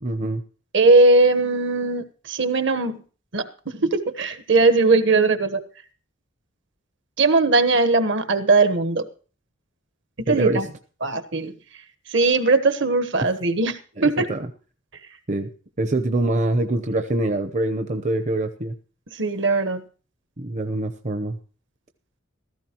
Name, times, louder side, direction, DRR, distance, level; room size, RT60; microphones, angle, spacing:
voice 1, 0.0-0.4 10.3-10.6 14.0-14.5 15.3-15.5 15.8-18.7 20.4-21.4, right 2 dB, 35° right, 7 dB, 0.8 m, -24 dB
voice 2, 0.7-3.0 3.3-3.5 3.7-5.6 7.2-9.1 10.3-10.7 11.0-11.5 12.1-14.3 19.1-19.8, right 3 dB, 60° right, 10 dB, 1.2 m, -19 dB
15.5 x 14.0 x 3.0 m, 0.39 s
head